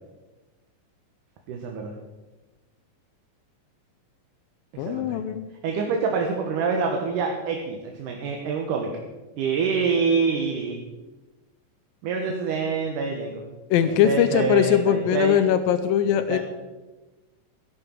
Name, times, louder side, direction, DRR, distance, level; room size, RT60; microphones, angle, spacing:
voice 1, 1.5-1.9 4.7-5.2 5.6-8.9 9.4-10.8 12.0-13.4 13.8-15.4 16.3-16.4, right 5 dB, 70° right, 2 dB, 2.6 m, -26 dB
voice 2, 4.8-5.4 13.7-16.4, left 10 dB, 85° left, 11 dB, 2.4 m, -21 dB
17.0 x 11.0 x 4.6 m, 1.2 s
omnidirectional pair, 4.1 m